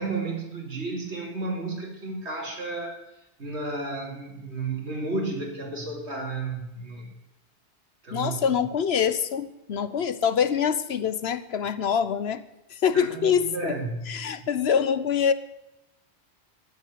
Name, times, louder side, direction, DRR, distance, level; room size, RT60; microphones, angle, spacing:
voice 1, 0.0-3.0 3.4-7.1 8.0-8.5 12.9-14.1, right 3 dB, 75° right, 0 dB, 3.2 m, -32 dB
voice 2, 8.1-12.4 12.7-13.8 14.1-15.3, left 7 dB, 70° left, 14 dB, 1.1 m, -25 dB
13.5 x 9.3 x 8.6 m, 0.89 s
omnidirectional pair, 1.1 m